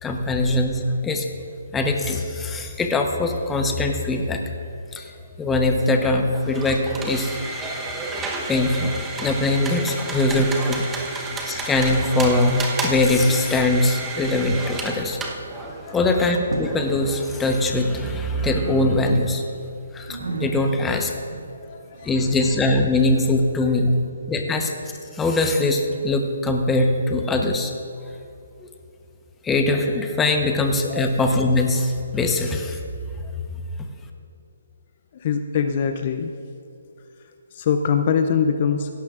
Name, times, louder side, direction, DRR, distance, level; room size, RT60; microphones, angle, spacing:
voice 1, 0.0-1.3 1.7-4.4 4.9-5.1 5.4-7.4 8.5-8.9 9.2-15.2 15.9-19.4 19.9-21.1 22.0-24.0 24.3-24.7 25.1-27.7 28.6-28.7 29.4-32.8, left 2 dB, 10° left, 4 dB, 0.9 m, -22 dB
sound 1, 6.3-18.1, right 3 dB, 10° right, 0.9 m, -32 dB
sound 2, 14.5-15.2 15.5-15.8 16.4-17.0 17.2-18.1 18.3-19.3 19.6-23.3, right 3 dB, 80° right, 1.8 m, -35 dB
voice 2, 21.7-22.1 30.9-31.0 35.1-36.3 37.5-38.9, left 7 dB, 45° left, 7 dB, 0.5 m, -23 dB
16.5 x 11.5 x 2.5 m, 2.6 s
hypercardioid pair, 150°, 0 cm